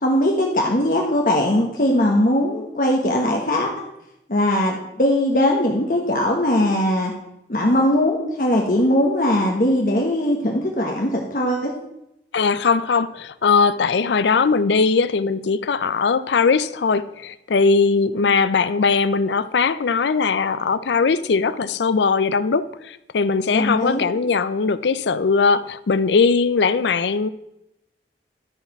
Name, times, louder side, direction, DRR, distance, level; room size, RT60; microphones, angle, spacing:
voice 1, 0.0-3.9 4.3-7.1 7.5-11.7 23.5-24.1, left 1 dB, 50° left, 1.2 m, -20 dB
voice 2, 12.3-27.3, left 5 dB, 80° left, 0.5 m, -20 dB
12.5 x 4.8 x 5.9 m
head